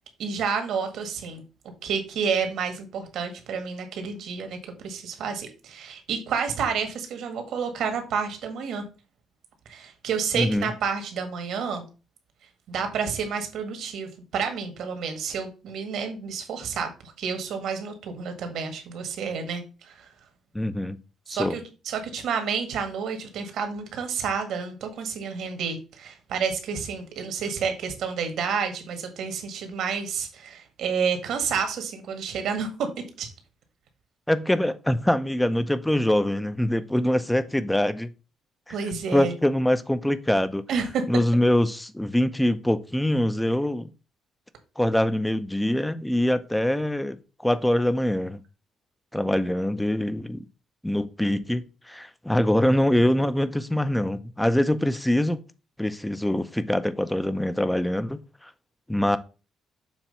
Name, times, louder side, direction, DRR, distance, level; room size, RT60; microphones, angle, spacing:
voice 1, 0.2-1.4 1.8-8.8 9.7-11.9 12.7-20.1 21.3-32.9 33.2-33.3 38.7-39.4 40.7-41.0, right 6 dB, 75° right, 1.7 m, -30 dB
voice 2, 10.3-10.7 20.5-21.0 21.3-21.6 34.3-38.1 38.7-38.8 39.1-40.6 41.1-43.9 44.8-48.4 49.1-50.4 50.8-55.4 55.8-58.5 58.9-59.2, left 1 dB, 5° left, 0.6 m, -24 dB
7.2 x 3.0 x 5.5 m
cardioid pair, 90°, 0 cm